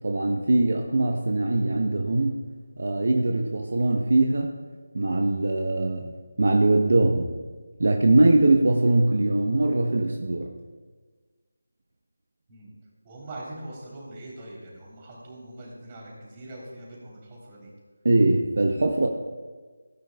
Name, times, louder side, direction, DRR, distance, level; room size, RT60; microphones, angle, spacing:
voice 1, 0.0-2.4 2.8-4.5 4.9-6.1 6.4-7.3 7.8-10.5 18.0-19.1, right 2 dB, 60° right, 3 dB, 0.9 m, -22 dB
voice 2, 13.0-17.7, right 1 dB, 25° right, -4 dB, 3.2 m, -42 dB
17.0 x 9.2 x 2.3 m, 1.4 s
figure-of-eight pair, 165°, 0 cm